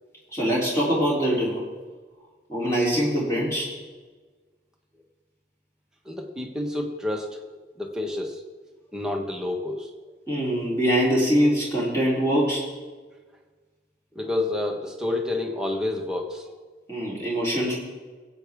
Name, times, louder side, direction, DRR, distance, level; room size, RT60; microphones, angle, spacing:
voice 1, 0.3-1.6 2.5-3.7 10.3-12.7 16.9-17.8, equal, 15° left, -6 dB, 3.2 m, -23 dB
voice 2, 6.0-8.4 8.9-9.9 14.1-16.5, left 2 dB, 5° right, 0 dB, 1.1 m, -29 dB
21.0 x 8.3 x 3.5 m, 1.4 s
head